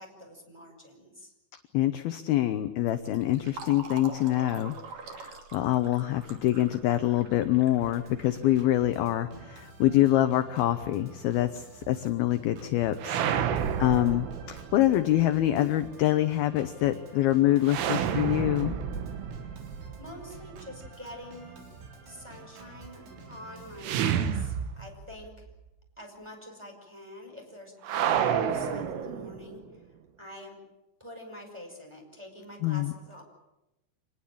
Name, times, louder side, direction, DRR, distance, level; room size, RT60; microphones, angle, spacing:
voice 1, 0.0-1.3 20.0-21.6 22.0-25.5 26.0-29.9 30.2-30.6 31.0-33.2, left 1 dB, 5° right, 1 dB, 5.0 m, -46 dB
voice 2, 1.7-4.8 5.0-18.7 32.6-32.9, left 14 dB, 75° left, 10 dB, 2.3 m, -25 dB
Fill (with liquid), 2.8-9.2, right 4 dB, 45° right, 3.3 m, -45 dB
Organ, 7.8-23.8, right 3 dB, 65° right, 5.9 m, -49 dB
sound 1, 13.0-15.0 17.7-20.7 23.8-25.2 25.5-25.6 27.8-29.6, right 8 dB, 90° right, 4.2 m, -30 dB
26.0 x 20.0 x 8.7 m, 0.97 s
omnidirectional pair, 5.5 m